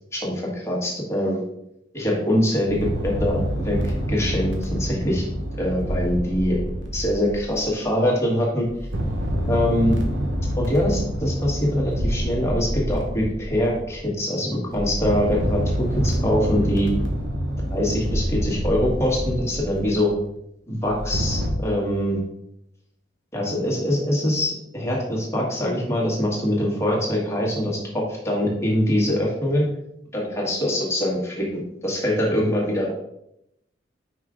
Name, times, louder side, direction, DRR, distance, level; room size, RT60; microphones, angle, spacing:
voice 1, 0.1-1.4 1.9-2.8 3.0-5.2 5.6-6.6 6.9-8.7 9.5-10.0 10.6-16.9 17.7-20.1 20.7-22.2 23.3-29.7 30.1-32.9, left 1 dB, 15° left, -3 dB, 1.6 m, -23 dB
sound 1, 2.6-7.9 8.6-14.0 14.7-20.1 20.8-21.5, equal, 75° right, 1.1 m, -27 dB
5.3 x 4.9 x 3.7 m, 0.80 s
head